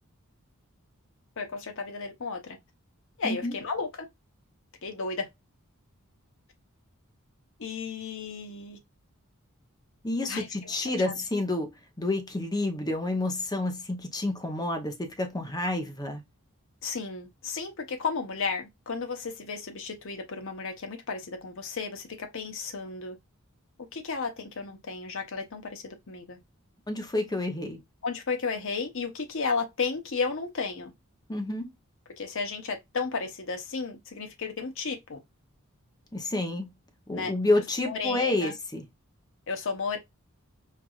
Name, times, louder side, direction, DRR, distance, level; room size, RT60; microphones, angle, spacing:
voice 1, 1.4-2.6 3.2-3.9 4.8-5.3 7.6-8.8 10.3-11.1 16.8-23.2 23.9-26.4 28.0-30.9 32.2-35.2 37.1-37.3 37.8-38.5 39.5-40.0, left 4 dB, 60° left, 0.9 m, -33 dB
voice 2, 3.2-3.5 10.0-11.7 12.0-16.2 26.9-27.8 31.3-31.7 36.1-36.7 37.1-38.8, left 2 dB, 20° left, 0.7 m, -29 dB
4.5 x 2.5 x 2.3 m
head